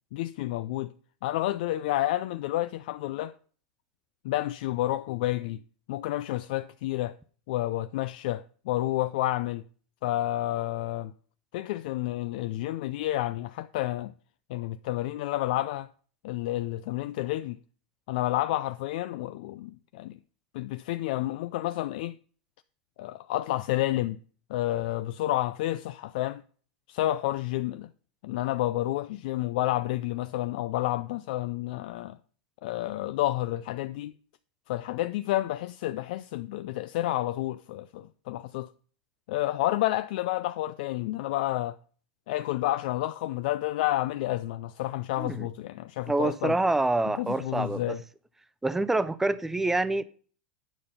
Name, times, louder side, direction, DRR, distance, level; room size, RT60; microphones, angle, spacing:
voice 1, 0.1-0.9 1.2-3.3 4.2-5.6 5.9-7.2 7.5-9.6 10.0-11.1 11.5-14.1 14.5-15.9 16.2-17.6 18.1-20.2 20.5-22.1 23.0-24.2 24.5-26.4 26.9-27.9 28.2-32.2 32.6-34.1 34.7-38.7 39.3-41.8 42.3-46.6 47.2-48.0, left 15 dB, 65° left, 0.4 m, -30 dB
voice 2, 46.1-48.0 48.6-50.0, right 2 dB, 5° right, 0.6 m, -26 dB
9.2 x 5.2 x 5.5 m
supercardioid pair, 125°, 5 cm